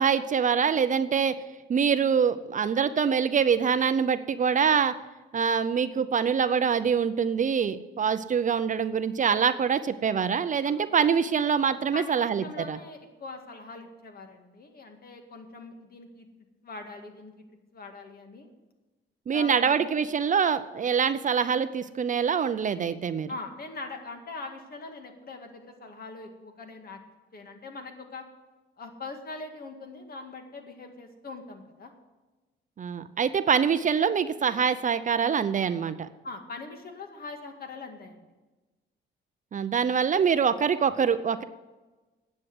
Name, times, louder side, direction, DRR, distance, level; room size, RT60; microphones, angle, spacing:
voice 1, 0.0-1.3 1.7-4.9 5.3-12.8 19.3-23.3 32.8-36.1 39.5-41.4, right 7 dB, 40° right, 12 dB, 0.6 m, -25 dB
voice 2, 11.9-16.3 16.6-18.5 19.3-20.0 23.3-27.0 27.3-28.2 28.8-31.9 36.2-38.3, left 3 dB, 50° left, 5 dB, 1.9 m, -42 dB
9.9 x 7.4 x 7.8 m, 1.2 s
cardioid pair, 90°, 20 cm